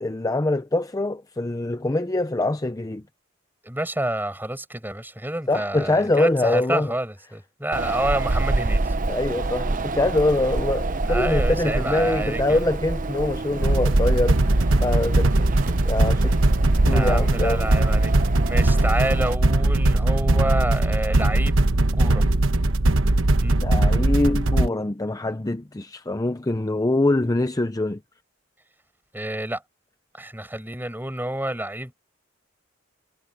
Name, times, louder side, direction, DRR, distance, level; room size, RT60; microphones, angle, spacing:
voice 1, 0.0-3.0 5.5-6.9 9.1-15.3 15.7-16.4 16.8-17.7 23.6-28.0, left 2 dB, 20° left, 0.6 m, -24 dB
voice 2, 3.6-8.9 11.1-12.6 16.9-18.1 18.4-21.6 22.0-22.3 23.4-23.6 29.1-29.6 30.1-31.9, right 1 dB, 10° right, 6.6 m, -28 dB
Wind, 7.7-19.3, right 2 dB, 45° right, 0.8 m, -26 dB
sound 1, 13.6-24.7, right 2 dB, 90° right, 1.2 m, -20 dB
head